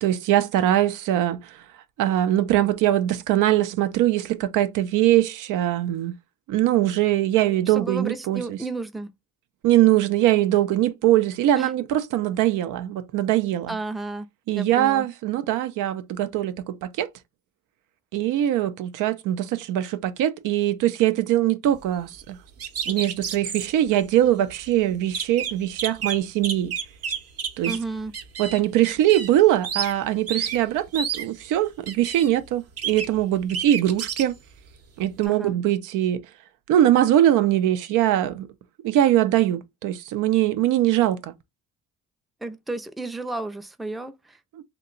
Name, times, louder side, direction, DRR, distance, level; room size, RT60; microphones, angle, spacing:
voice 1, 0.0-1.5 2.0-6.1 6.5-8.6 9.6-13.8 14.5-17.1 18.1-22.4 22.9-26.7 27.6-27.7 28.4-34.3 35.0-36.2 36.7-38.5 38.8-41.3 44.6-44.7, right 13 dB, 90° right, 0.5 m, -22 dB
voice 2, 7.7-9.1 11.6-11.7 13.7-14.3 14.6-15.1 27.7-28.1 35.3-35.5 42.4-44.4, right 3 dB, ahead, 0.4 m, -32 dB
sound 1, 22.6-23.7 24.3-24.4 24.6-24.7 25.1-27.9 28.1-29.4 29.6-29.9 30.3-30.6 30.9-31.3 31.9-32.3 32.8-33.2 33.5-34.2 35.2-35.3, right 7 dB, 55° right, 0.7 m, -30 dB
2.8 x 2.2 x 3.7 m
cardioid pair, 90°, 30 cm